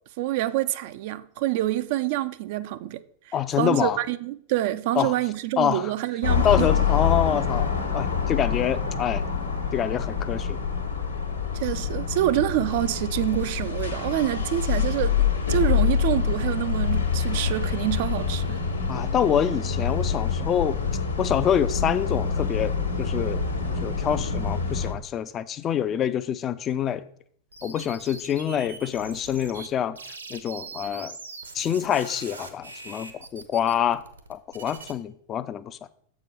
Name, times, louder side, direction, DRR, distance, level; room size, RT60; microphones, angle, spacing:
voice 1, 0.2-6.7 11.5-15.2 15.5-18.6, right 14 dB, 50° right, 0.3 m, -27 dB
voice 2, 3.3-4.0 5.0-5.2 5.6-5.9 6.4-9.2 9.7-10.6 18.9-20.8 21.2-23.4 23.7-27.0 27.6-30.0 30.3-31.2 31.5-34.0 34.3-36.0, left 9 dB, 30° left, 0.4 m, -26 dB
sound 1, 6.2-24.9, left 6 dB, 75° left, 1.2 m, -26 dB
sound 2, 27.5-29.7 29.9-34.9, right 4 dB, 75° right, 0.9 m, -42 dB
7.3 x 4.9 x 5.4 m
figure-of-eight pair, 90°, 0 cm